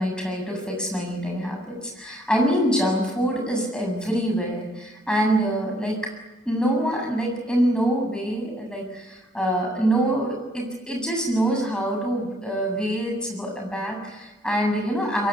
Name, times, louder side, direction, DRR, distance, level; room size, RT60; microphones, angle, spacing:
voice 1, 0.0-6.0 6.5-15.3, right 1 dB, 5° left, 1 dB, 7.7 m, -25 dB
24.5 x 22.5 x 9.6 m, 1.1 s
head